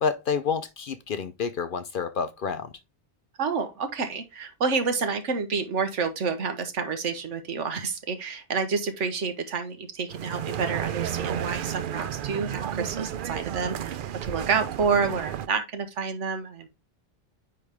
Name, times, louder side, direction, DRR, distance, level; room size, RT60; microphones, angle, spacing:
voice 1, 0.0-2.7, left 6 dB, 55° left, 0.7 m, -29 dB
voice 2, 3.4-14.0 14.2-16.7, right 5 dB, 80° right, 1.4 m, -29 dB
sound 1, 10.1-15.5, right 10 dB, 60° right, 0.6 m, -32 dB
9.5 x 3.4 x 3.5 m
omnidirectional pair, 1.2 m